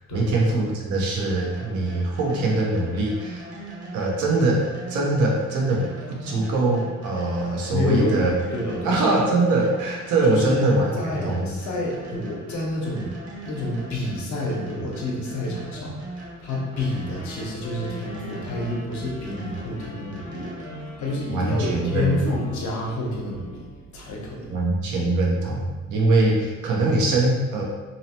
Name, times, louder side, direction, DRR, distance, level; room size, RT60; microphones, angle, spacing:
voice 1, 0.0-3.4 3.9-8.3 8.8-10.9 11.2-11.6 21.3-22.4 24.5-27.6, right 2 dB, 80° right, -1 dB, 0.7 m, -22 dB
sound 1, 1.4-21.0, right 2 dB, 50° right, 0.9 m, -39 dB
voice 2, 7.7-9.0 10.2-10.6 10.9-24.6, left 1 dB, 70° left, -3 dB, 0.8 m, -29 dB
Wind instrument woodwind instrument, 16.7-23.9, left 3 dB, 25° left, 0.4 m, -44 dB
2.8 x 2.0 x 2.8 m, 1.3 s
cardioid pair, 90°, 30 cm